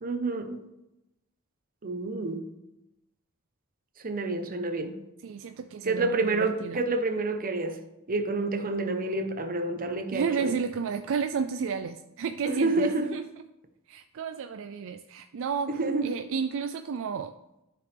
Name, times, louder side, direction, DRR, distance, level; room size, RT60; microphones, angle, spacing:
voice 1, 0.0-0.6 1.8-2.4 4.0-5.0 5.8-7.8 8.1-10.5 12.5-13.1 15.7-16.1, right 2 dB, 40° right, 0.9 m, -28 dB
voice 2, 5.2-6.8 10.1-13.2 13.9-17.3, right 6 dB, 65° right, 0.4 m, -32 dB
12.5 x 5.1 x 3.4 m
head